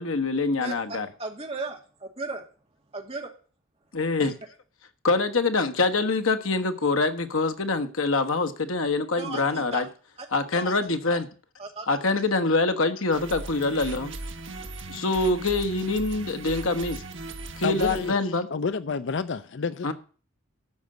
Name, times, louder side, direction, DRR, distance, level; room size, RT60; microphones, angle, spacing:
voice 1, 0.0-1.1 3.9-4.4 5.0-9.9 10.3-11.3 11.9-14.1 14.9-17.0 17.6-18.5 19.8-19.9, left 3 dB, 75° left, 1.3 m, -25 dB
voice 2, 1.2-2.4 2.9-3.3 4.2-4.3 9.2-9.8 10.5-10.7 11.6-11.9, right 3 dB, 30° right, 2.3 m, -35 dB
sound 1, 13.1-18.1, right 2 dB, 60° right, 1.4 m, -38 dB
voice 3, 17.6-18.1 18.5-19.9, left 5 dB, 55° left, 0.5 m, -29 dB
13.0 x 5.1 x 7.9 m
head